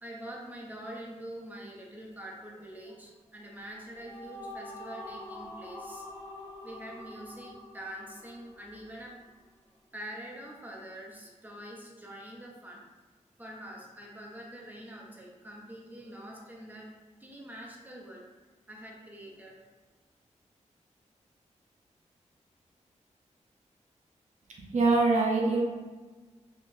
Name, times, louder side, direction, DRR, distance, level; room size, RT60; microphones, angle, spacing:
voice 1, 0.0-6.1 6.6-9.3 9.9-12.8 13.4-16.9 17.2-18.2 18.7-19.6, right 1 dB, 15° right, -2 dB, 0.6 m, -45 dB
sound 1, 3.6-9.1, left 1 dB, 30° left, 0.6 m, -45 dB
voice 2, 24.6-25.6, right 3 dB, 70° right, -2 dB, 0.8 m, -24 dB
3.9 x 2.8 x 2.6 m, 1.3 s
wide cardioid pair, 135°, 13 cm